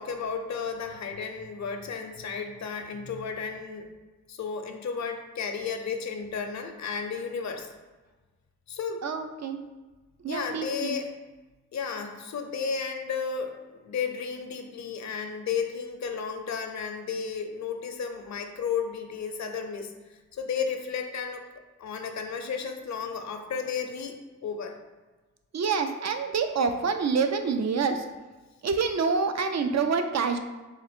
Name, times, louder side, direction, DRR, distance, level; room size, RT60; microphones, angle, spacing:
voice 1, 0.0-3.9 4.3-7.7 8.7-9.0 10.3-11.1 11.7-19.9 20.3-21.4 21.8-24.8, left 6 dB, 60° left, 4 dB, 0.6 m, -33 dB
voice 2, 9.0-9.6 10.2-10.9 25.5-28.0 28.6-30.4, right 5 dB, 55° right, 7 dB, 0.5 m, -27 dB
3.9 x 2.5 x 4.3 m, 1.2 s
cardioid pair, 50°, 33 cm